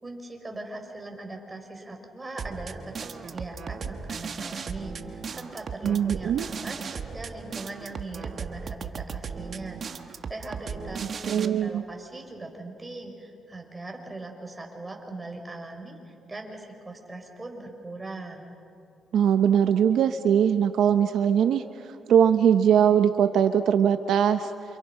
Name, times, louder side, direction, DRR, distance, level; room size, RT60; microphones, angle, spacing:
voice 1, 0.0-18.5, right 2 dB, 20° right, 2 dB, 5.1 m, -40 dB
sound 1, 2.4-11.5, right 5 dB, 50° right, 1.5 m, -36 dB
voice 2, 5.8-6.5 11.3-11.8 19.1-21.6 22.1-24.5, right 8 dB, 75° right, 9 dB, 0.8 m, -21 dB
28.5 x 28.0 x 5.8 m, 2.6 s
cardioid pair, 90°, 0 cm